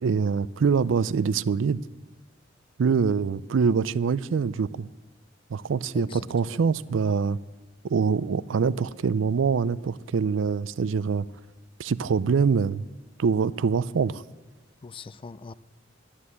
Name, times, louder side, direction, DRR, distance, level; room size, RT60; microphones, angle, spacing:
voice 1, 0.0-1.8 2.8-4.9 5.5-7.4 7.8-11.3 11.8-12.8 13.2-14.2, right 5 dB, 80° right, 0.4 m, -24 dB
voice 2, 5.9-6.7 14.8-15.5, left 4 dB, 25° left, 0.4 m, -42 dB
11.5 x 10.0 x 8.3 m
head